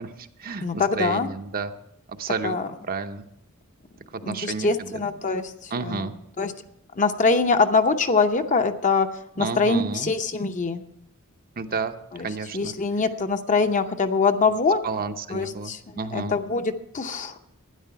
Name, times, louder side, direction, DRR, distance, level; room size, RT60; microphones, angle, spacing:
voice 1, 0.0-1.7 2.2-2.6 2.8-3.2 4.3-5.0 5.7-6.1 9.4-10.1 11.6-12.0 12.2-12.7 14.5-14.6 14.8-16.4, right 4 dB, 40° right, 8 dB, 0.7 m, -31 dB
voice 2, 0.6-1.3 2.4-2.6 4.2-5.5 5.8-6.1 6.4-6.5 7.0-9.1 9.4-10.8 12.5-14.8 15.3-15.8 16.1-17.3, left 4 dB, 35° left, 7 dB, 0.7 m, -23 dB
12.5 x 9.9 x 5.7 m, 0.77 s
head